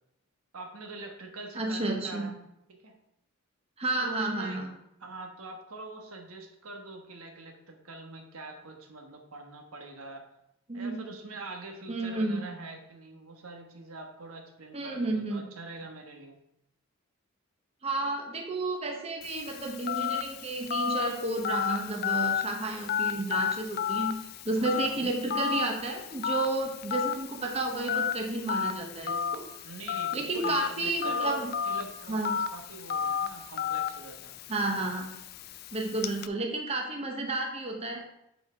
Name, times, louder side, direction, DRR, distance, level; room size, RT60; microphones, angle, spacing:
voice 1, 0.5-2.4 2.7-3.0 4.0-4.6 5.0-10.2 10.7-16.4 24.5-25.1 29.6-34.4, right 3 dB, 85° right, 3 dB, 1.3 m, -44 dB
voice 2, 1.5-2.3 3.8-4.7 10.7-11.0 11.9-12.4 14.7-15.4 17.8-24.2 24.4-29.5 30.1-31.5 32.1-32.3 34.5-35.1 35.7-38.0, right 2 dB, 30° right, 1 dB, 0.9 m, -31 dB
Telephone, 19.2-36.3, left 7 dB, 45° left, 0.4 m, -33 dB
8.1 x 4.5 x 4.8 m, 0.82 s
head